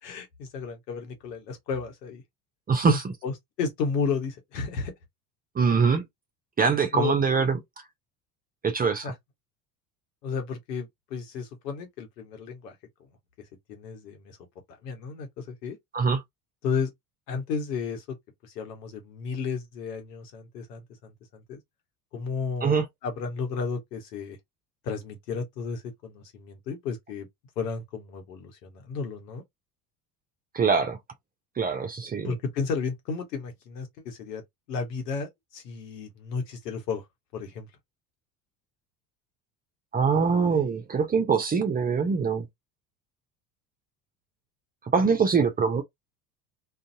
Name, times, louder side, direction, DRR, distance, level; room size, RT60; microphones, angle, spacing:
voice 1, 0.0-2.2 2.9-4.9 6.9-7.1 9.0-9.2 10.2-12.7 13.7-14.4 14.8-15.8 16.6-16.9 17.3-18.2 18.4-21.6 22.1-24.4 24.8-27.3 27.6-29.4 32.2-34.4 34.7-37.0 37.3-37.7, left 5 dB, 75° left, 1.1 m, -33 dB
voice 2, 5.6-6.0 6.6-7.5 8.6-9.0 15.9-16.2 22.6-22.8 30.5-31.0 31.6-32.3 39.9-42.5 44.9-45.8, right 5 dB, 20° right, 0.5 m, -23 dB
2.6 x 2.4 x 2.6 m
figure-of-eight pair, 65°, 50 cm